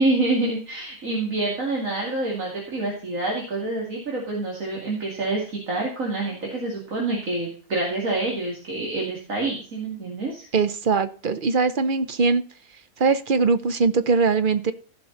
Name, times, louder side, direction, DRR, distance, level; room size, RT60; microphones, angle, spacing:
voice 1, 0.0-10.5, right 2 dB, 85° right, -2 dB, 2.8 m, -27 dB
voice 2, 10.5-12.4 13.0-14.7, right 4 dB, 45° right, 11 dB, 0.8 m, -21 dB
15.0 x 6.1 x 3.9 m, 0.41 s
omnidirectional pair, 1.4 m